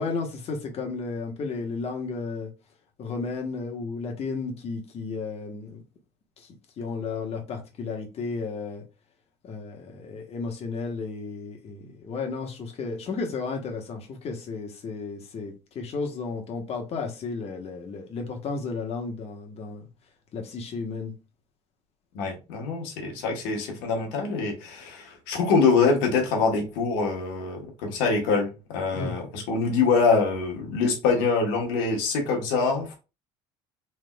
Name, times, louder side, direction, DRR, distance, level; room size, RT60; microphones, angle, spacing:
voice 1, 0.0-2.5 3.0-5.8 6.4-8.8 9.4-19.8 20.3-21.1 28.9-29.1, left 4 dB, 50° left, 1.1 m, -33 dB
voice 2, 22.1-33.0, left 4 dB, 90° left, 1.2 m, -24 dB
3.3 x 3.3 x 2.2 m
supercardioid pair, 90°, 13 cm